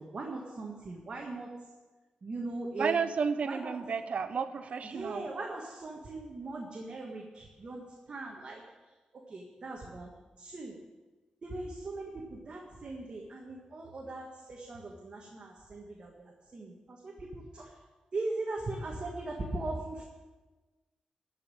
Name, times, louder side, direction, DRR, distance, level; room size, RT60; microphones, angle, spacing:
voice 1, 0.0-1.5 2.2-3.0 3.5-3.7 4.9-8.6 9.1-10.1 10.4-10.7 11.4-17.7 18.1-20.0, right 2 dB, 45° right, -1 dB, 1.5 m, -39 dB
voice 2, 2.8-5.3, right 5 dB, 60° right, 11 dB, 0.7 m, -32 dB
14.0 x 5.4 x 8.9 m, 1.2 s
wide cardioid pair, 145°, 2 cm